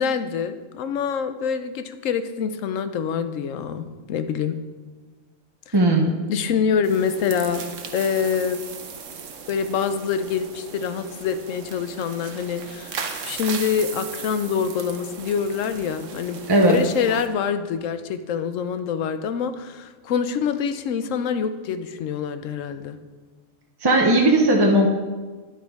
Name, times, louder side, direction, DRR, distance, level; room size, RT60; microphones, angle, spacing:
voice 1, 0.0-4.6 5.7-5.8 6.3-7.6 7.9-8.6 9.5-16.4 16.7-23.0, left 7 dB, 80° left, 10 dB, 1.0 m, -25 dB
voice 2, 5.7-6.2 16.5-16.8 23.8-24.9, right 1 dB, 25° right, 0 dB, 0.5 m, -17 dB
sound 1, 6.8-17.3, right 5 dB, 75° right, 1.2 m, -37 dB
10.0 x 9.2 x 3.5 m, 1.4 s
omnidirectional pair, 1.3 m